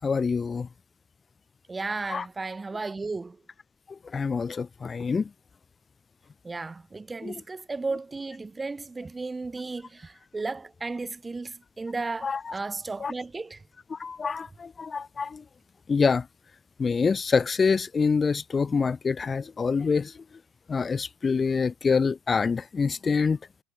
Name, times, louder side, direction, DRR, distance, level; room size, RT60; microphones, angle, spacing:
voice 1, 0.0-0.7 2.1-2.2 4.1-5.3 7.2-7.3 12.2-12.5 13.0-13.1 13.9-15.4 15.9-16.3 16.8-20.1 20.7-23.4, left 5 dB, 25° left, 1.4 m, -26 dB
voice 2, 1.7-3.4 6.4-13.6, right 3 dB, 20° right, 1.3 m, -34 dB
supercardioid pair, 95°, 0 cm